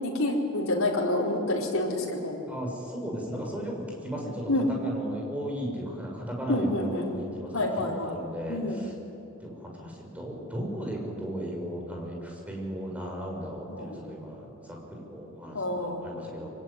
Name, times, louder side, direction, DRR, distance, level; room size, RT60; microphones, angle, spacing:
voice 1, 0.0-2.4 4.5-4.7 6.5-7.1 7.5-8.1 8.5-8.8 13.7-14.0 15.5-16.0, left 1 dB, 65° left, -2 dB, 4.9 m, -28 dB
voice 2, 2.5-8.9 9.4-16.5, equal, 5° right, 0 dB, 5.9 m, -36 dB
25.0 x 23.5 x 10.0 m, 2.9 s
head